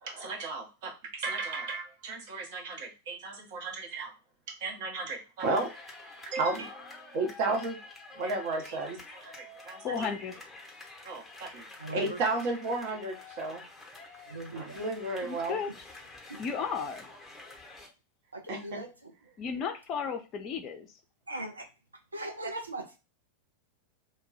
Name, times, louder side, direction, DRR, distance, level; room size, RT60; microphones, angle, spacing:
voice 1, 0.0-4.1 4.6-5.7 6.3-7.8 8.2-10.1 11.0-13.6 14.5-15.6 18.5-18.8, right 3 dB, 50° right, 1 dB, 0.8 m, -34 dB
sound 1, 5.4-17.9, left 3 dB, 5° left, 0.8 m, -48 dB
voice 2, 9.8-10.4 15.2-15.7 16.4-17.1 19.4-20.9, left 6 dB, 35° left, 6 dB, 0.4 m, -34 dB
voice 3, 11.8-12.2 14.3-14.8 16.3-16.4 18.3-19.1 21.3-21.7 22.1-23.0, right 2 dB, 80° right, 3 dB, 0.5 m, -39 dB
2.2 x 2.1 x 3.8 m, 0.30 s
figure-of-eight pair, 90°, 0 cm